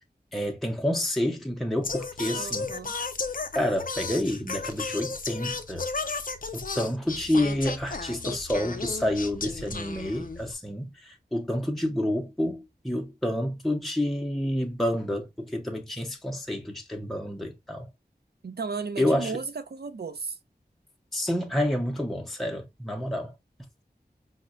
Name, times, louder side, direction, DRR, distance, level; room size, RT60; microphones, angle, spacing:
voice 1, 0.3-2.7 3.5-5.8 6.5-17.9 19.0-19.3 21.1-23.3, left 1 dB, ahead, 0.6 m, -29 dB
Singing, 1.8-10.5, left 4 dB, 50° left, 0.5 m, -34 dB
voice 2, 2.3-3.0 18.4-20.4, right 4 dB, 65° right, 0.6 m, -34 dB
4.9 x 2.1 x 2.4 m
wide cardioid pair, 45°, 18 cm